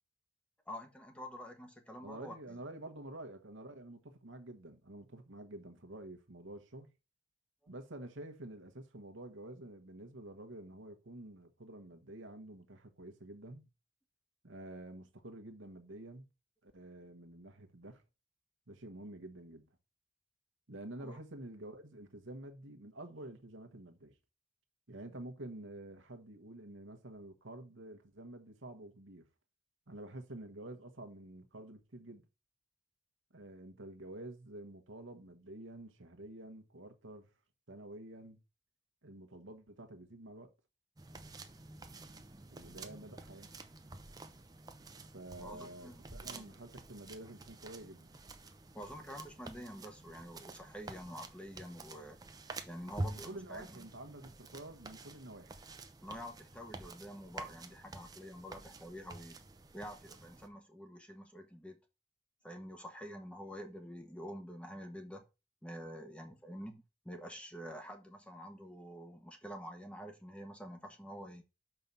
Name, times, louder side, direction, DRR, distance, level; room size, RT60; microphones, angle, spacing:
voice 1, 0.7-2.4 21.0-21.2 45.4-46.6 48.7-52.2 52.7-53.9 56.0-59.4 59.7-61.8 62.4-65.2 65.6-71.4, equal, 5° left, 1.1 m, -47 dB
voice 2, 2.0-6.9 7.7-13.7 14.4-16.3 16.6-18.0 18.7-19.7 20.7-24.1 24.9-29.3 29.9-32.2 33.3-37.3 37.7-38.4 39.0-40.5 42.5-43.5 45.1-48.1 53.1-55.5, right 1 dB, 85° right, 1.4 m, -49 dB
sound 1, 41.0-60.5, right 2 dB, 20° right, 0.7 m, -49 dB
6.1 x 5.6 x 5.4 m
head